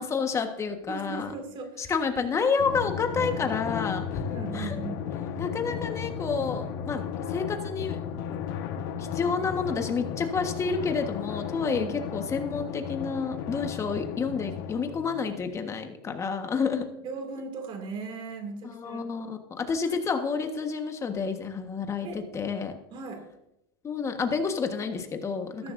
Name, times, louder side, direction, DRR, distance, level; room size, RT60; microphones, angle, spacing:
voice 1, 0.0-1.3 1.8-4.2 4.5-4.8 5.4-7.0 7.3-8.0 8.3-8.4 9.0-16.8 18.7-22.8 23.8-25.7, left 5 dB, 25° left, 6 dB, 1.4 m, -29 dB
voice 2, 0.9-1.9 4.3-5.1 11.7-12.0 17.0-19.0 19.8-20.0 22.0-22.2 22.9-23.3 25.6-25.7, right 4 dB, 45° right, 4 dB, 2.6 m, -38 dB
Drum, 2.6-15.7, left 8 dB, 70° left, 1.4 m, -34 dB
14.5 x 13.5 x 2.7 m, 0.86 s
supercardioid pair, 125°, 12 cm